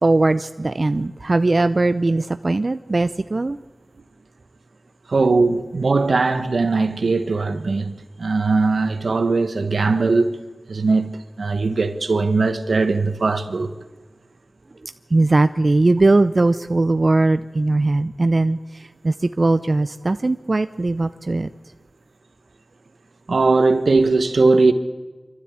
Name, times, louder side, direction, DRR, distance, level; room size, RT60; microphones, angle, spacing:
voice 1, 0.0-3.6 15.1-21.5, right 2 dB, 55° right, 0.6 m, -19 dB
voice 2, 5.1-10.4 10.7-13.8 23.3-24.7, right 3 dB, 85° right, 1.4 m, -19 dB
26.5 x 13.0 x 8.6 m
cardioid pair, 40°, 0 cm